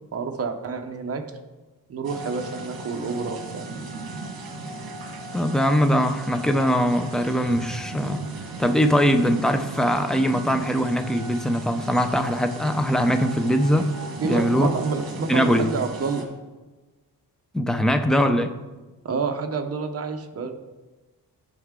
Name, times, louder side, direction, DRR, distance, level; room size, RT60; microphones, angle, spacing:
voice 1, 0.1-1.2 1.9-3.6 14.2-16.2 19.0-20.5, right 4 dB, 40° right, 5 dB, 0.8 m, -28 dB
sound 1, 2.0-16.2, right 2 dB, 65° right, 1.3 m, -36 dB
voice 2, 5.3-8.3 8.6-13.9 14.2-14.7 15.3-15.8 17.5-18.5, equal, ahead, 8 dB, 0.3 m, -21 dB
11.0 x 5.5 x 3.7 m, 1.2 s
wide cardioid pair, 175°, 38 cm